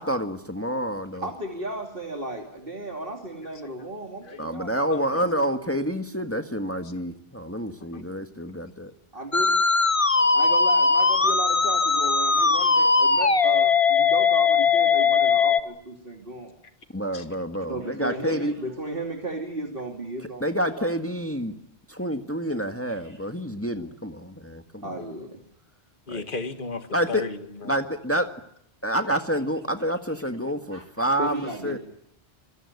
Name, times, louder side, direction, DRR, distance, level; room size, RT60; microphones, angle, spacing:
voice 1, 0.0-1.3 4.4-8.9 16.9-18.5 20.4-21.5 21.9-25.1 26.1-26.2 26.9-27.3 27.7-28.3 28.8-31.8, equal, 15° left, 7 dB, 1.7 m, -28 dB
voice 2, 1.2-4.7 9.1-9.5 10.3-16.5 17.7-20.9 22.9-23.3 24.8-25.4 30.1-30.2 30.7-30.9 31.2-31.8, right 2 dB, 55° right, 3 dB, 3.0 m, -35 dB
voice 3, 4.8-5.2 7.8-8.1 17.1-17.3 26.1-27.7, left 4 dB, 50° left, 8 dB, 2.0 m, -35 dB
Musical instrument, 9.3-15.6, left 4 dB, 30° left, 1.4 m, -20 dB
26.5 x 22.5 x 9.6 m, 0.75 s
omnidirectional pair, 1.1 m